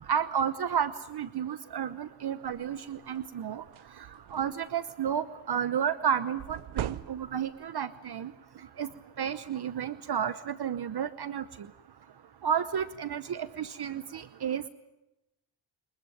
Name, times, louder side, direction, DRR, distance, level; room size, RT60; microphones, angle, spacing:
voice 1, 0.1-3.6 4.3-8.3 8.8-8.9 9.2-11.4 12.4-14.7, right 8 dB, 55° right, 14 dB, 0.9 m, -31 dB
sound 1, 2.4-2.7 3.2-3.3 3.6-4.7 6.4-7.6, right 12 dB, 80° right, 0.9 m, -39 dB
24.5 x 20.5 x 9.1 m, 0.93 s
cardioid pair, 90°, 48 cm